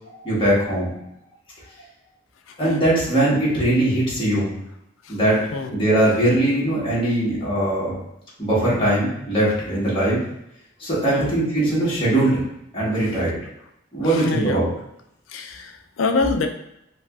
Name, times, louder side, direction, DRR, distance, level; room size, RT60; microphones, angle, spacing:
voice 1, 0.1-0.9 2.6-4.6 5.1-5.4 5.7-7.9 8.4-10.2 10.8-12.4 12.7-13.3 13.9-14.7, right 1 dB, 25° left, -8 dB, 1.3 m, -20 dB
voice 2, 2.5-2.8 5.0-5.2 5.5-5.8 6.0-6.1 11.1-11.3 12.9-13.2 14.0-14.6 15.3-16.5, left 3 dB, 80° left, 6 dB, 0.4 m, -26 dB
4.7 x 2.3 x 2.3 m, 0.78 s
head